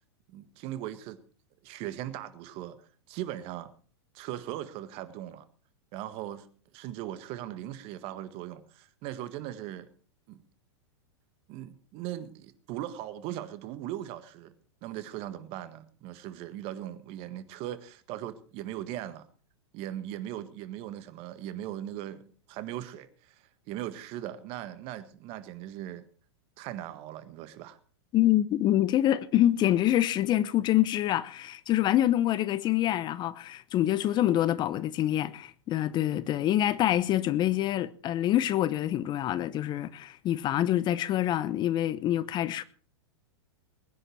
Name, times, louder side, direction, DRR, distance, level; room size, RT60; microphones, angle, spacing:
voice 1, 0.3-1.2 1.6-2.8 3.1-3.7 4.1-5.4 5.9-6.5 6.7-9.9 10.3-10.4 11.5-14.5 14.8-19.3 19.7-26.0 26.6-27.8, right 12 dB, 45° right, 1.7 m, -39 dB
voice 2, 28.1-42.6, left 13 dB, 30° left, 0.8 m, -26 dB
21.0 x 10.0 x 4.6 m
hypercardioid pair, 110°, 14 cm